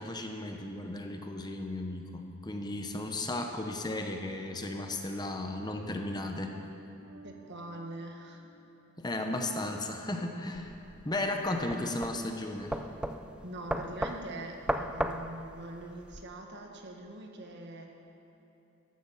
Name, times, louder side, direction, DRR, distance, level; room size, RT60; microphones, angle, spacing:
voice 1, 0.0-6.6 9.0-10.7 11.0-12.7, left 2 dB, 20° left, 4 dB, 0.9 m, -35 dB
Bass guitar, 7.0-9.7, right 2 dB, 80° right, 1.4 m, -58 dB
voice 2, 7.2-8.5 13.4-17.9, right 1 dB, 60° right, 2 dB, 1.5 m, -43 dB
sound 1, 10.5-16.2, right 1 dB, 5° right, 0.4 m, -36 dB
14.5 x 11.5 x 5.6 m, 3.0 s
head